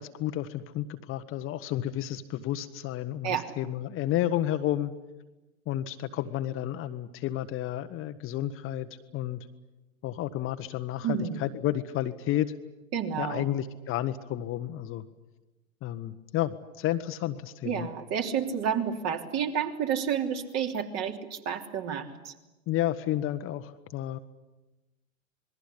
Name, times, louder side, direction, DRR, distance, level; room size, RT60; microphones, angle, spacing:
voice 1, 0.0-4.9 5.7-8.9 9.1-9.4 10.0-12.5 13.2-15.0 15.8-17.9 22.7-24.2, left 12 dB, 30° left, 9 dB, 1.2 m, -31 dB
voice 2, 11.0-11.4 12.9-13.5 17.6-22.3, right 8 dB, 40° right, 4 dB, 3.2 m, -30 dB
27.0 x 21.0 x 10.0 m, 1.1 s
figure-of-eight pair, 95°, 41 cm